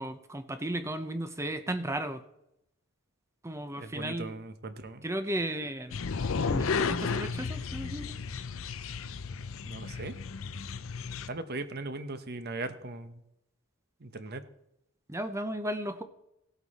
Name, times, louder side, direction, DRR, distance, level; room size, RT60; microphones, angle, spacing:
voice 1, 0.0-2.2 3.4-4.4 5.0-6.0 6.4-8.2 15.1-16.0, right 1 dB, 10° right, 9 dB, 0.7 m, -35 dB
voice 2, 3.7-5.0 9.6-10.1 11.3-13.2 14.0-14.4, right 2 dB, 45° right, 10 dB, 1.0 m, -39 dB
sound 1, 5.9-11.3, left 5 dB, 60° left, 0.5 m, -33 dB
17.5 x 8.1 x 4.1 m, 0.81 s
head